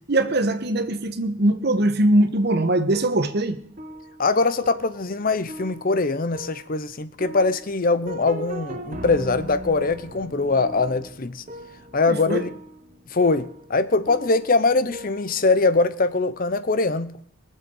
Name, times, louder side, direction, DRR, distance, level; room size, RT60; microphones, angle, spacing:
voice 1, 0.1-3.6 12.1-12.4, right 1 dB, 55° right, 1.2 m, -21 dB
sound 1, 2.4-15.6, right 1 dB, 40° right, 1.3 m, -40 dB
voice 2, 4.2-11.4 11.9-12.5 13.1-17.1, left 3 dB, 45° left, 0.8 m, -22 dB
22.0 x 7.6 x 5.4 m
head